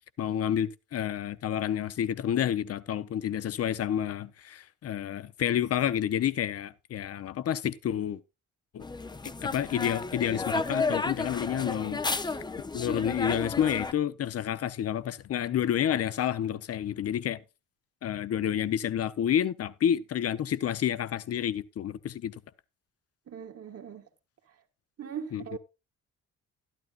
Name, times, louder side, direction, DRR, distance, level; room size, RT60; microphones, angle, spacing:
voice 1, 0.2-8.2 8.7-8.8 9.2-12.3 12.7-17.4 18.0-22.3 25.3-25.6, left 10 dB, 50° left, 0.7 m, -29 dB
sound 1, 8.8-13.9, left 3 dB, 15° left, 0.5 m, -32 dB
voice 2, 23.3-24.1 25.0-25.6, right 7 dB, 50° right, 1.6 m, -39 dB
12.0 x 12.0 x 2.4 m
cardioid pair, 110°, 31 cm